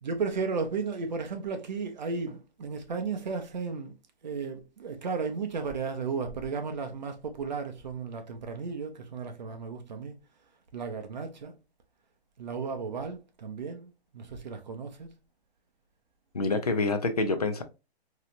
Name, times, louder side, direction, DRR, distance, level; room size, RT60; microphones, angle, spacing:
voice 1, 0.0-3.9 4.2-10.2 10.7-11.5 12.4-15.1, right 5 dB, 45° right, 0.6 m, -34 dB
voice 2, 16.3-17.6, left 3 dB, 40° left, 0.4 m, -27 dB
3.2 x 2.8 x 2.4 m
hypercardioid pair, 175°, 32 cm